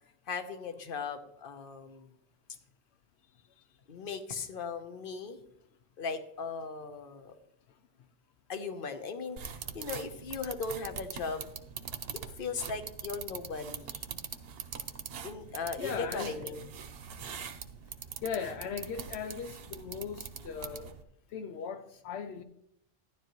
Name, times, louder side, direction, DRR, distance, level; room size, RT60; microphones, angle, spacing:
voice 1, 0.3-2.1 3.9-5.4 6.0-7.3 8.5-11.5 12.4-13.9 15.2-16.6, left 5 dB, 55° left, 1.0 m, -38 dB
sound 1, 9.4-21.0, right 7 dB, 65° right, 0.9 m, -43 dB
voice 2, 15.8-16.6 18.2-20.9 21.3-22.4, left 6 dB, 80° left, 0.9 m, -38 dB
12.0 x 10.5 x 3.0 m
omnidirectional pair, 1.1 m